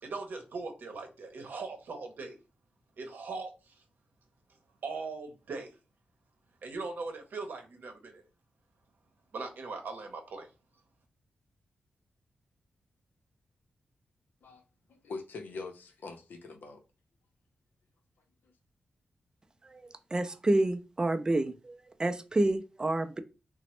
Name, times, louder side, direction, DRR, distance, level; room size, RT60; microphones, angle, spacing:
voice 1, 0.0-2.4 3.0-3.8 4.8-5.7 6.6-8.2 9.3-10.5, right 3 dB, 70° right, 0.7 m, -40 dB
voice 2, 14.9-16.8, left 3 dB, 80° left, 0.6 m, -43 dB
voice 3, 20.1-23.2, right 2 dB, 25° right, 0.3 m, -29 dB
3.0 x 2.0 x 3.0 m
cardioid pair, 85°, 3 cm